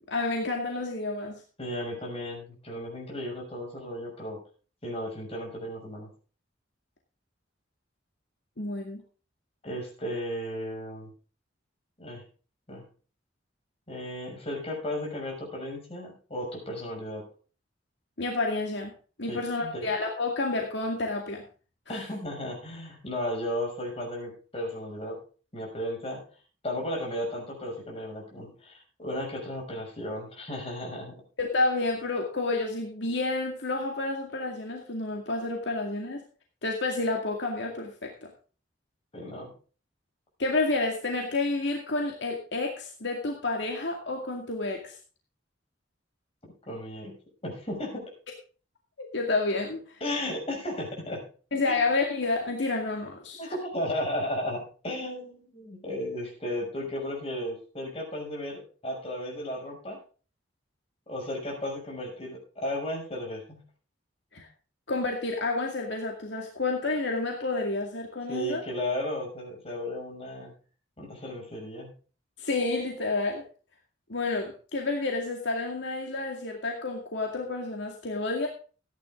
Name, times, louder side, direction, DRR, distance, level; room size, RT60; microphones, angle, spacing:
voice 1, 0.1-1.4 8.6-9.0 18.2-18.9 19.2-21.4 21.9-22.0 31.4-36.2 36.6-38.1 40.4-45.0 49.0-49.8 51.5-53.4 64.3-64.5 64.9-68.6 72.4-73.4 74.1-78.5, left 3 dB, 70° left, 1 dB, 2.2 m, -29 dB
voice 2, 1.6-4.4 4.8-6.1 9.6-11.1 12.0-12.2 12.7-12.8 13.9-17.3 19.3-19.8 21.9-25.2 25.5-26.2 26.6-31.2 39.1-39.5 46.7-47.1 47.4-48.1 50.0-51.2 51.7-51.8 53.4-60.0 61.1-63.6 68.3-70.5 71.0-71.9, left 1 dB, 35° left, 0 dB, 6.4 m, -34 dB
15.0 x 10.5 x 3.7 m, 0.37 s
head